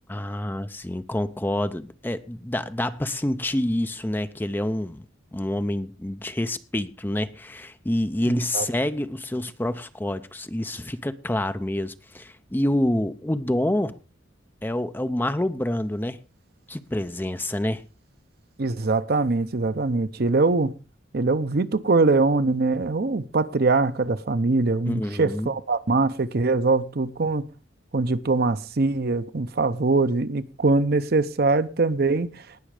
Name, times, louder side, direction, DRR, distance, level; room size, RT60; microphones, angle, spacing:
voice 1, 0.1-5.1 5.3-14.0 14.6-16.2 16.7-17.8 24.9-25.5, left 1 dB, 10° left, 0.6 m, -27 dB
voice 2, 8.3-8.7 18.6-20.7 21.1-27.4 27.9-32.3, right 3 dB, 55° right, 0.7 m, -22 dB
19.0 x 6.4 x 4.9 m
head